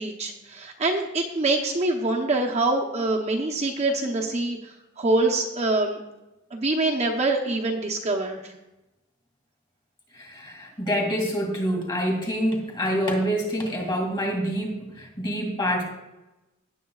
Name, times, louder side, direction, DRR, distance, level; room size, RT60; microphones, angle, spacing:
voice 1, 0.0-6.0 6.5-8.5, right 2 dB, 35° right, 0 dB, 0.9 m, -25 dB
voice 2, 10.1-15.8, equal, 25° left, 2 dB, 2.4 m, -26 dB
17.0 x 7.6 x 2.4 m, 0.98 s
head